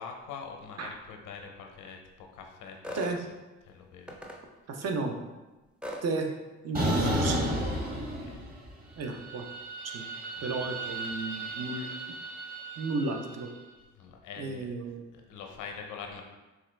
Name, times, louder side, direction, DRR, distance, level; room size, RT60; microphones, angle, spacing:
voice 1, 0.0-3.3 3.6-4.2 8.0-8.4 10.6-10.7 13.9-14.7 15.1-16.2, left 6 dB, 90° left, 3 dB, 0.6 m, -44 dB
sound 1, 2.8-3.2 4.1-4.4 5.8-6.1 7.2-7.4, equal, 5° right, 0.4 m, -39 dB
voice 2, 4.7-5.2 6.0-6.3 6.6-7.5 9.0-9.5 9.8-10.1 10.4-11.9 12.8-13.5 14.4-15.1, right 3 dB, 55° right, 3 dB, 0.6 m, -33 dB
sound 2, 6.7-8.7 9.0-13.3, right 1 dB, 30° right, 1.1 m, -33 dB
4.2 x 2.4 x 3.1 m, 1.1 s
cardioid pair, 90°, 30 cm